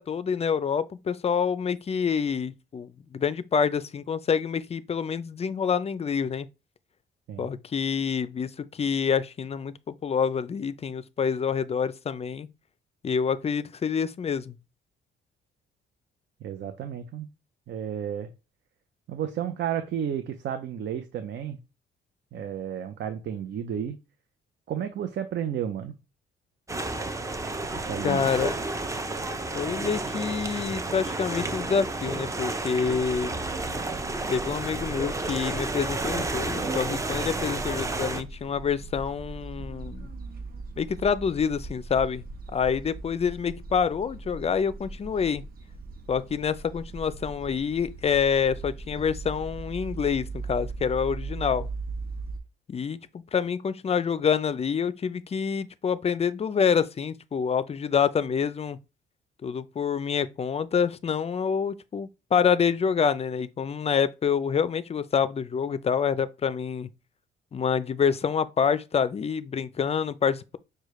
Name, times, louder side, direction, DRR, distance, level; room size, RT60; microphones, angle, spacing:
voice 1, 0.0-6.5 7.4-12.5 13.0-14.6 28.0-28.5 29.5-33.4 34.3-40.1 40.8-42.2 42.5-45.4 46.1-51.7 52.7-53.0 53.3-58.8 59.4-66.9 67.5-70.6, left 6 dB, 30° left, 0.4 m, -27 dB
voice 2, 16.4-17.3 17.7-18.3 19.1-21.6 22.3-24.0 24.7-26.0 27.7-28.3, right 9 dB, 65° right, 0.6 m, -32 dB
sound 1, 26.7-38.2, right 2 dB, 15° right, 0.6 m, -31 dB
sound 2, 32.9-52.4, right 3 dB, 50° right, 1.0 m, -39 dB
6.4 x 2.2 x 3.1 m
cardioid pair, 90°, 20 cm